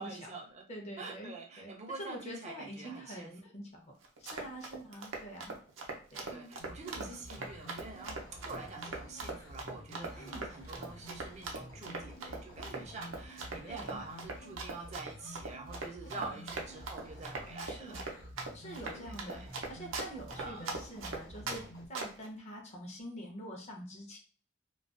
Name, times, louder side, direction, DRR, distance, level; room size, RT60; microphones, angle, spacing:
voice 1, 0.0-0.7 1.0-3.3 4.3-4.5 6.3-18.0 18.8-19.5 20.4-20.8, right 3 dB, 35° right, 1 dB, 0.5 m, -46 dB
voice 2, 0.7-1.7 2.0-3.9 4.2-5.5 6.1-6.5 6.9-7.1 10.1-10.4 12.6-12.9 13.7-14.0 16.1-16.4 17.7-18.0 18.5-24.2, equal, 35° left, 0 dB, 0.6 m, -46 dB
Run, 4.0-21.6 21.9-22.3, right 3 dB, 80° right, 0.6 m, -40 dB
sound 1, 6.6-21.9, equal, 75° left, 0.9 m, -49 dB
2.3 x 2.2 x 2.4 m, 0.40 s
head